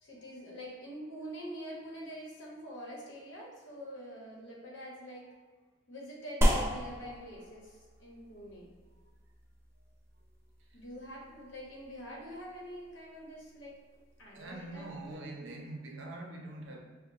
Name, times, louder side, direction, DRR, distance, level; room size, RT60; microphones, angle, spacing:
voice 1, 0.0-5.3 5.9-8.8 10.7-13.8 14.2-15.4, equal, 85° left, -3 dB, 1.1 m, -45 dB
sound 1, 6.4-15.1, equal, 15° right, 0.4 m, -36 dB
voice 2, 14.3-16.8, right 2 dB, 80° right, 1 dB, 0.6 m, -44 dB
5.7 x 2.2 x 2.7 m, 1.4 s
head